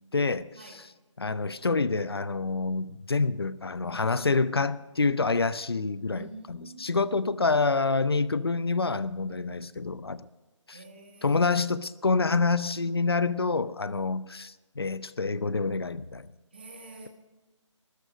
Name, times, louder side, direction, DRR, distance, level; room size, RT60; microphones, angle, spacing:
voice 1, 0.1-0.9 1.2-10.3 10.7-10.8 11.2-16.3, left 4 dB, 50° left, 0.6 m, -27 dB
voice 2, 6.0-6.9 10.7-11.6 16.5-17.1, right 3 dB, 20° right, 1.5 m, -48 dB
16.0 x 13.5 x 5.1 m
figure-of-eight pair, 180°, 16 cm